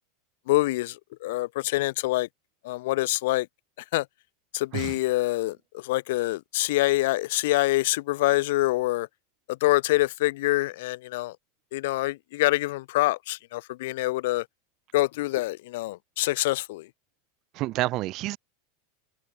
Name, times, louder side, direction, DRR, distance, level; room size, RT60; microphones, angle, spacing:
voice 1, 0.5-0.9 1.2-2.3 2.6-3.5 3.9-4.0 4.5-9.1 9.6-11.3 11.7-14.4 14.9-16.8, left 19 dB, 70° left, 0.5 m, -25 dB
voice 2, 17.5-18.4, right 18 dB, 45° right, 2.1 m, -29 dB
supercardioid pair, 125°, 0 cm